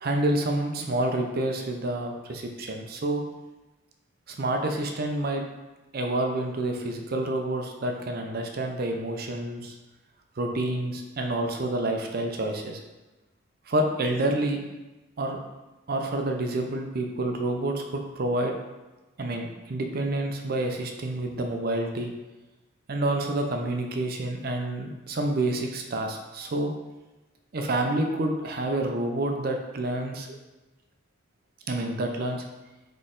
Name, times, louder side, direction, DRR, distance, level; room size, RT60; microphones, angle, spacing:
voice 1, 0.0-3.2 4.3-5.4 5.9-9.7 10.4-12.8 13.7-14.6 15.2-15.4 15.9-18.5 19.2-22.1 22.9-26.7 27.5-30.3 31.7-32.4, right 1 dB, 50° right, 3 dB, 0.5 m, -28 dB
4.1 x 3.1 x 3.8 m, 1.1 s
head